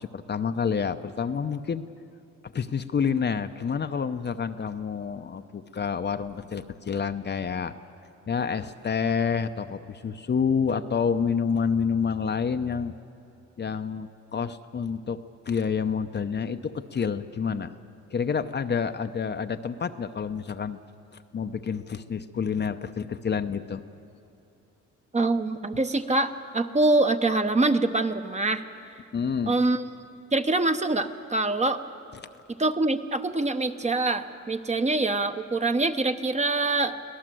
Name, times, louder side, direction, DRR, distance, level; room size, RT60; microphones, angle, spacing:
voice 1, 0.0-1.8 2.5-7.7 8.3-12.9 13.6-17.8 18.1-20.8 21.3-23.8 29.1-29.5, left 6 dB, 35° left, 8 dB, 0.8 m, -28 dB
voice 2, 25.1-28.6 29.5-29.8 30.3-31.8 32.6-37.0, right 2 dB, 20° right, 8 dB, 1.0 m, -24 dB
24.0 x 17.5 x 7.7 m, 2.7 s
cardioid pair, 90°, 30 cm